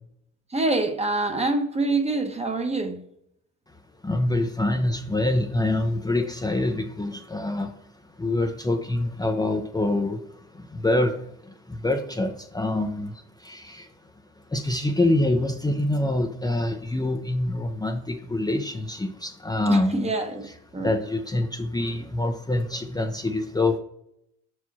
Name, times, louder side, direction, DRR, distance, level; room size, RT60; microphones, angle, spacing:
voice 1, 0.5-3.0 19.7-20.5 20.7-21.0, right 2 dB, 20° right, 1.0 m, -26 dB
voice 2, 4.0-7.7 8.2-13.9 14.5-20.1 20.4-23.8, left 2 dB, 15° left, 0.6 m, -26 dB
5.8 x 4.8 x 4.2 m
cardioid pair, 90°, 30 cm